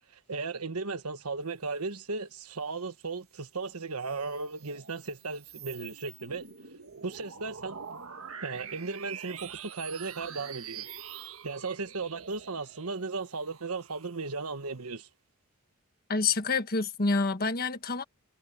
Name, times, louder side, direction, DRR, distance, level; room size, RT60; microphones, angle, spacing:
voice 1, 0.1-6.5 7.0-7.8 8.4-10.8 11.4-15.1, right 4 dB, 90° right, 1.4 m, -36 dB
sound 1, 3.8-14.7, right 7 dB, 70° right, 1.7 m, -46 dB
voice 2, 16.1-18.0, left 4 dB, 45° left, 1.5 m, -27 dB
head